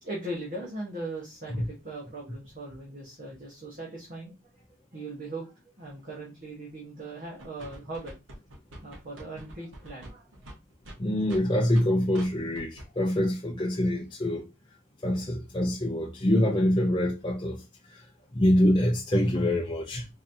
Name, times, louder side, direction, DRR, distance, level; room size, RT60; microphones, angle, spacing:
voice 1, 0.0-4.6 4.9-8.1 8.8-10.4, right 2 dB, 45° right, 1.1 m, -39 dB
sound 1, 7.4-11.9 12.1-12.3 12.5-12.9 13.1-13.2, right 1 dB, 75° right, 1.0 m, -45 dB
voice 2, 11.0-14.5 15.0-20.1, left 1 dB, 25° left, 0.5 m, -25 dB
3.9 x 2.8 x 2.6 m
head